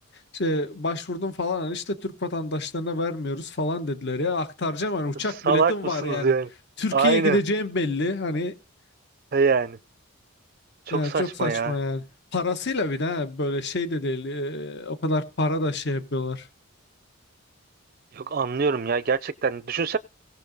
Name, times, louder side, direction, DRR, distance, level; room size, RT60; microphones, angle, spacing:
voice 1, 0.3-6.3 6.8-8.5 10.9-12.0 12.3-16.5, left 2 dB, 50° left, 1.1 m, -27 dB
voice 2, 5.2-6.5 6.9-7.4 9.3-9.8 10.9-11.8 18.1-20.0, right 5 dB, 40° right, 0.4 m, -24 dB
17.5 x 5.9 x 3.9 m
head